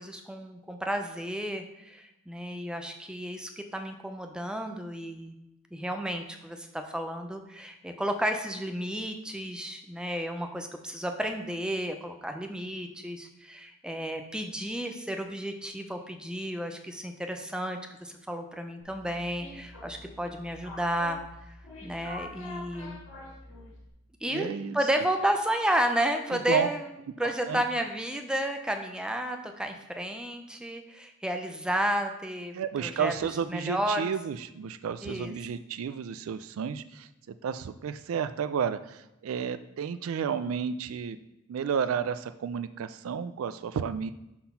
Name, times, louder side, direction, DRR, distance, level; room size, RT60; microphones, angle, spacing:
voice 1, 0.0-5.3 5.7-21.2 21.5-21.6 21.8-23.0 24.2-24.5 24.7-26.9 27.2-33.1 33.5-34.1 35.0-35.3, right 1 dB, 5° right, 5 dB, 0.5 m, -32 dB
sound 1, 18.8-23.9, left 2 dB, 70° left, 2.3 m, -45 dB
voice 2, 24.3-24.8 26.5-26.7 27.2-27.6 32.5-41.2 41.5-44.1, right 7 dB, 85° right, 12 dB, 0.3 m, -32 dB
5.7 x 4.3 x 5.5 m, 0.90 s
head